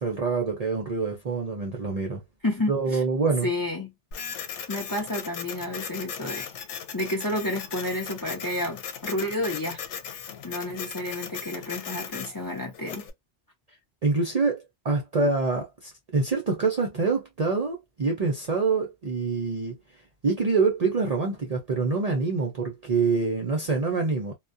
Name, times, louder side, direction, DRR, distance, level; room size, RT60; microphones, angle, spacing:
voice 1, 0.0-2.2 2.7-3.5 14.0-19.7 20.2-24.3, right 4 dB, 45° right, 0.5 m, -26 dB
voice 2, 2.4-3.0 3.4-3.9 4.7-6.5 6.9-9.8 10.4-13.1, left 1 dB, 25° left, 0.6 m, -30 dB
Printer, 4.1-13.1, left 7 dB, 85° left, 0.9 m, -38 dB
2.3 x 2.2 x 2.5 m
omnidirectional pair, 1.2 m